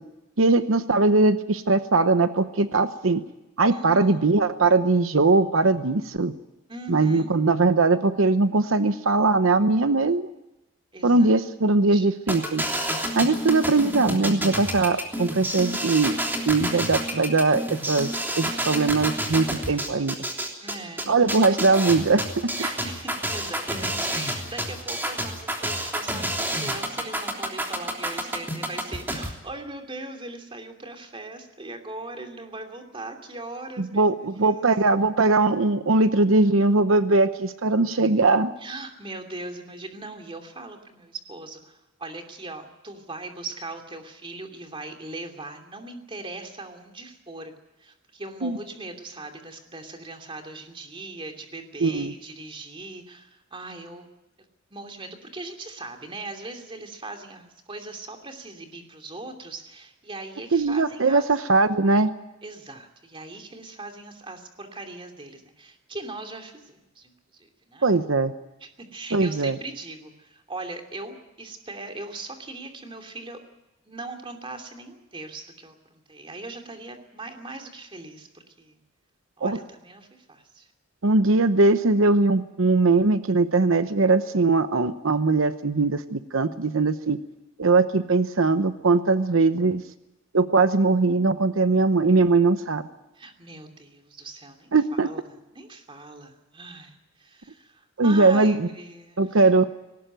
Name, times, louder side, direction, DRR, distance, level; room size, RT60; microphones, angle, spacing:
voice 1, 0.4-3.2 3.6-6.3 6.9-10.3 11.0-12.6 13.1-16.2 16.4-20.2 21.1-22.3 33.8-38.5 48.4-48.6 51.8-52.1 60.5-62.1 67.8-68.3 69.1-69.6 79.4-79.6 81.0-87.2 87.6-89.8 90.3-92.8 94.7-95.1 98.0-98.7 99.2-99.7, right 3 dB, 80° right, 11 dB, 0.9 m, -20 dB
voice 2, 3.7-4.3 6.7-7.3 10.9-11.3 11.9-12.1 20.6-21.1 22.6-34.6 38.6-47.5 47.8-54.1 54.7-61.3 62.4-68.0 68.6-73.4 73.8-78.8 79.4-80.7 93.1-94.7 95.0-95.2 95.5-99.3, right 2 dB, 25° right, 4 dB, 2.8 m, -40 dB
sound 1, 12.3-29.3, right 1 dB, 10° right, 3.3 m, -29 dB
19.5 x 18.5 x 9.1 m, 0.96 s
head